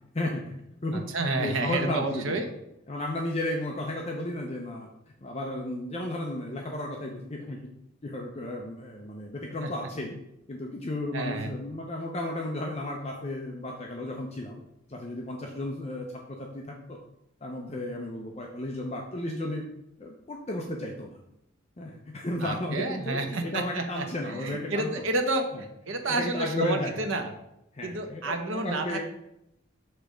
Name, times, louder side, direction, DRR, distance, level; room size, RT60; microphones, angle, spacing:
voice 1, 0.1-1.1 1.4-2.4 2.9-4.9 5.2-7.6 8.0-10.2 10.5-14.6 14.9-17.0 17.4-19.6 20.0-21.2 21.8-25.0 25.5-25.6 25.9-27.3 27.7-29.0, left 1 dB, 30° left, 0 dB, 0.6 m, -34 dB
voice 2, 1.1-2.4 9.6-9.7 11.1-11.5 22.4-27.3 27.8-29.0, right 2 dB, 70° right, 5 dB, 0.9 m, -30 dB
6.7 x 3.4 x 5.1 m, 0.82 s
head